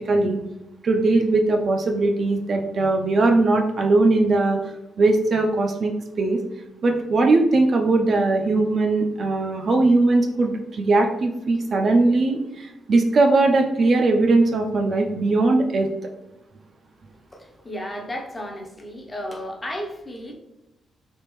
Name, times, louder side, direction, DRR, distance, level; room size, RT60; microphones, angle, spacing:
voice 1, 0.0-0.4 0.8-4.6 5.0-5.9 6.2-6.4 6.8-15.9, right 2 dB, 35° right, 3 dB, 0.4 m, -20 dB
voice 2, 17.3-20.3, equal, 15° left, 1 dB, 0.5 m, -33 dB
3.5 x 3.4 x 2.9 m, 0.94 s
wide cardioid pair, 180°, 0 cm